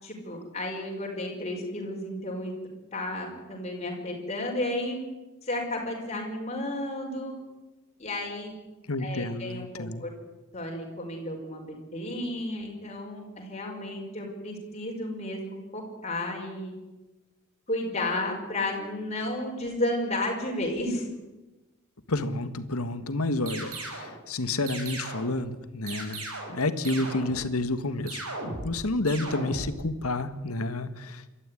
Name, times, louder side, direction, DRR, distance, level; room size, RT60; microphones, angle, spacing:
voice 1, 0.0-2.5 2.9-5.0 5.4-7.4 8.0-8.5 9.0-10.1 10.5-16.7 17.7-21.0, left 1 dB, 30° left, 0 dB, 5.5 m, -32 dB
voice 2, 8.9-10.0 22.1-26.2 26.5-28.2 28.6-31.4, left 2 dB, 85° left, 11 dB, 1.6 m, -30 dB
sound 1, 23.5-24.1 24.7-25.4 25.9-26.6 26.8-27.5 28.1-28.8 29.1-29.7, right 2 dB, 75° right, 6.5 m, -37 dB
25.5 x 14.0 x 9.9 m, 1.1 s
head